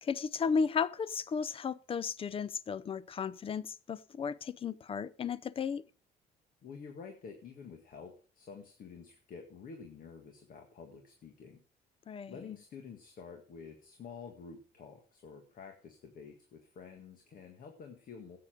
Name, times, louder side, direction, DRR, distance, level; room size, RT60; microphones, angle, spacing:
voice 1, 0.0-5.8 12.1-12.5, left 6 dB, 35° left, 0.6 m, -34 dB
voice 2, 6.6-11.6 12.3-18.4, left 5 dB, 55° left, 1.9 m, -49 dB
13.5 x 8.6 x 5.1 m
cardioid pair, 110°, 17 cm